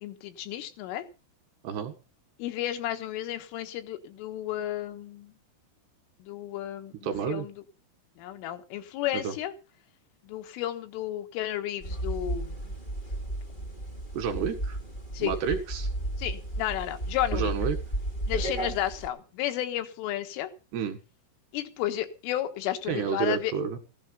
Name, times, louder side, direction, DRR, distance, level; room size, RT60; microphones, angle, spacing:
voice 1, 0.0-1.1 2.4-5.3 6.2-7.5 8.2-9.5 10.3-12.6 15.1-15.4 16.2-17.5 18.3-20.5 21.5-23.5, left 12 dB, 75° left, 9 dB, 3.8 m, -32 dB
voice 2, 1.6-1.9 7.0-7.5 9.1-9.3 14.1-14.8 15.2-15.9 17.3-17.8 20.7-21.0 22.9-23.8, right 7 dB, 65° right, 6 dB, 3.3 m, -30 dB
sound 1, 11.8-19.1, right 1 dB, 30° left, 0.9 m, -33 dB
16.0 x 11.5 x 5.5 m, 0.33 s
omnidirectional pair, 6.0 m